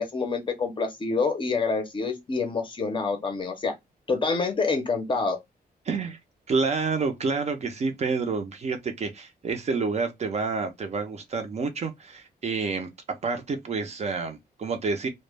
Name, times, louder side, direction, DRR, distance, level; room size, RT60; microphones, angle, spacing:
voice 1, 0.0-3.7 4.1-5.4, left 4 dB, 30° left, 0.5 m, -27 dB
voice 2, 5.9-6.2 6.5-15.1, right 4 dB, 40° right, 0.4 m, -29 dB
2.1 x 2.0 x 3.1 m
wide cardioid pair, 175°, 16 cm